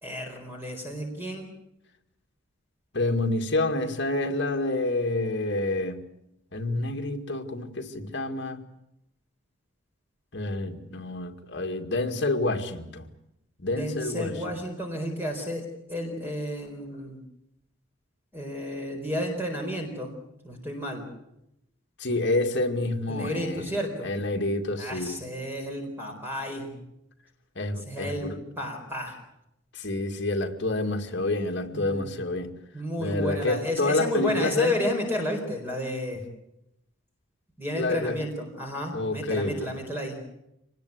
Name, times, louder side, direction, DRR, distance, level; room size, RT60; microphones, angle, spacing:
voice 1, 0.0-1.5 13.7-17.2 18.3-20.1 20.4-21.1 23.1-24.1 24.8-26.7 27.9-28.3 28.6-29.2 31.7-32.1 32.7-36.2 37.6-40.2, left 1 dB, 10° right, 4.4 m, -32 dB
voice 2, 2.9-6.0 6.5-8.6 10.3-13.1 13.6-14.4 22.0-23.7 24.0-25.2 27.6-28.4 29.7-32.5 33.0-34.8 37.7-38.2 38.9-39.7, left 2 dB, 55° left, 2.3 m, -28 dB
26.0 x 19.5 x 8.2 m
head